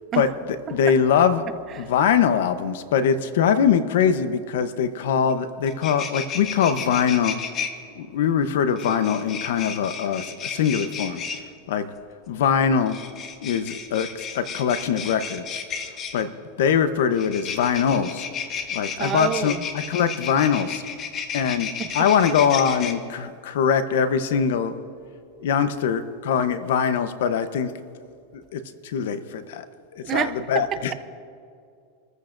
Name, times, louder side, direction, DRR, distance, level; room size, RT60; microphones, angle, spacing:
voice 1, 0.7-1.4 1.7-7.4 8.0-11.2 11.7-11.8 12.3-13.0 13.4-15.6 16.1-16.3 16.6-18.3 18.7-20.8 21.3-24.7 25.4-27.7 28.3-29.7 29.9-30.9, left 7 dB, 75° left, 0.9 m, -22 dB
sound 1, 5.3-5.4 5.6-7.7 8.8-11.4 12.8-16.2 17.1-22.9, left 6 dB, 35° left, 1.3 m, -33 dB
voice 2, 19.0-19.7 21.8-22.1 30.0-30.9, right 9 dB, 30° right, 0.7 m, -28 dB
26.5 x 14.5 x 2.6 m
supercardioid pair, 135°, 0 cm